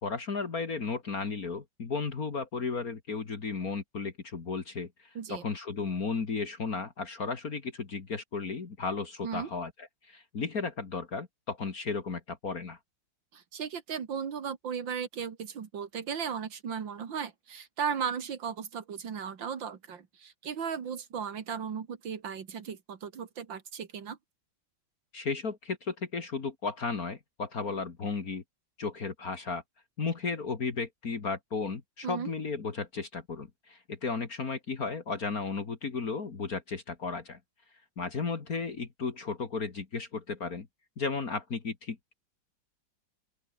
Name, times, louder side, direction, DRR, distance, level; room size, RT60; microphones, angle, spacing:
voice 1, 0.0-12.8 25.1-28.4 28.8-29.6 30.0-37.4 38.0-40.7 41.0-42.2, left 4 dB, 50° left, 2.5 m, -34 dB
voice 2, 13.3-24.2 32.0-32.3, right 7 dB, 75° right, 2.6 m, -36 dB
open air
omnidirectional pair, 2.0 m